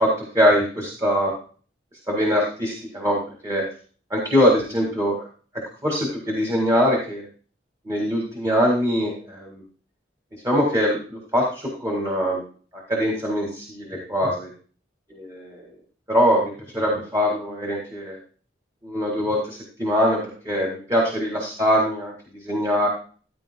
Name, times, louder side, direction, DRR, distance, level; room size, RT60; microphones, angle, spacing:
voice 1, 0.0-1.3 2.1-3.2 3.4-3.6 4.1-5.2 5.8-7.3 7.9-9.6 10.4-12.4 12.7-14.5 15.1-15.7 16.1-18.2 18.8-20.2 20.4-22.9, equal, 20° right, -1 dB, 1.9 m, -22 dB
14.5 x 9.5 x 2.2 m, 0.40 s
head